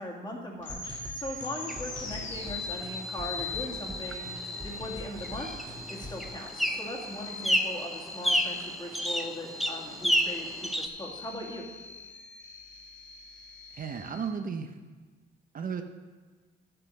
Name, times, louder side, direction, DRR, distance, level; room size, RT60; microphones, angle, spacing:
voice 1, 0.0-5.5 5.9-11.7, left 1 dB, 20° left, -2 dB, 2.2 m, -39 dB
sound 1, 0.6-14.3, left 3 dB, 70° left, 2.0 m, -41 dB
sound 2, 0.7-6.3, left 1 dB, 20° right, 1.4 m, -44 dB
sound 3, 1.7-10.9, equal, ahead, 0.7 m, -32 dB
voice 2, 13.7-14.7 15.5-15.8, right 6 dB, 45° right, 6 dB, 0.7 m, -34 dB
10.5 x 7.7 x 5.4 m, 1.4 s
cardioid pair, 90°, 20 cm